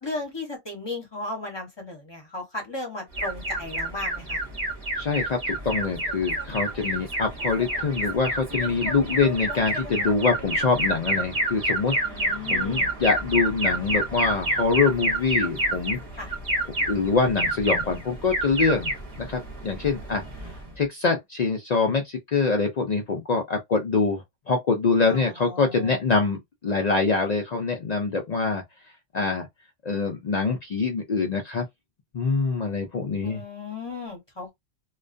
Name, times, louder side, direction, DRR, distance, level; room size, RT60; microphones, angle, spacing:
voice 1, 0.0-4.4 12.0-12.9 16.2-16.3 25.0-26.0 33.2-34.5, left 2 dB, 25° left, 0.8 m, -35 dB
Alarm, 3.1-20.8, right 1 dB, 35° right, 0.7 m, -29 dB
voice 2, 5.0-12.0 12.5-16.0 16.9-18.9 19.2-20.2 20.8-28.6 29.1-29.5 29.8-31.6 32.1-33.4, left 4 dB, 75° left, 0.3 m, -24 dB
2.3 x 2.2 x 2.4 m
omnidirectional pair, 1.3 m